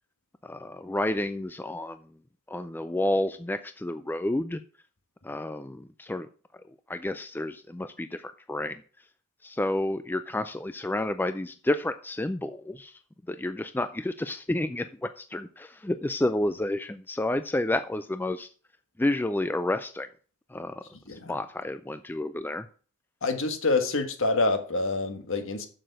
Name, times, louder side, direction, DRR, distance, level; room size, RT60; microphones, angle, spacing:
voice 1, 0.4-2.0 2.5-4.6 5.2-6.3 6.9-8.8 9.4-13.0 13.3-18.5 19.0-20.1 20.5-20.8 21.3-22.7, left 1 dB, 10° left, 0.3 m, -30 dB
voice 2, 23.2-25.7, left 3 dB, 60° left, 1.5 m, -27 dB
7.5 x 6.9 x 6.6 m
head